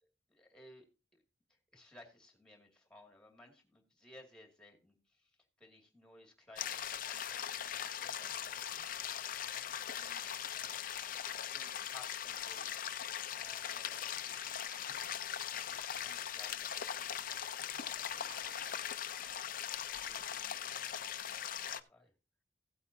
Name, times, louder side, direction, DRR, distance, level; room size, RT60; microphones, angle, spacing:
voice 1, 0.3-0.9 1.1-1.2 1.5-8.8 10.0-10.5 11.5-13.0 13.3-14.8 15.7-18.8 19.4-19.5 20.0-22.1, left 1 dB, 5° left, 2 dB, 2.3 m, -60 dB
sound 1, 6.6-21.8, left 9 dB, 45° left, 0.6 m, -40 dB
sound 2, 12.0-21.1, right 3 dB, 50° right, 1.2 m, -64 dB
16.0 x 8.3 x 2.7 m, 0.30 s
head